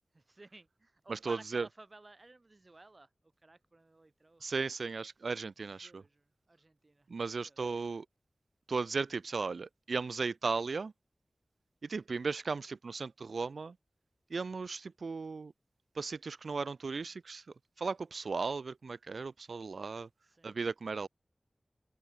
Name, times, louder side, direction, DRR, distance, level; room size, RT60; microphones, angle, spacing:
voice 1, 0.1-3.1 3.4-4.4 5.8-7.1 7.4-7.8 20.2-20.6, right 2 dB, 45° right, 3.3 m, -56 dB
voice 2, 1.1-1.7 4.4-6.0 7.1-8.1 8.7-10.9 11.8-13.8 14.3-15.5 16.0-17.4 17.8-20.1 20.4-21.1, right 4 dB, 85° right, 0.4 m, -36 dB
open air
wide cardioid pair, 60°, 0 cm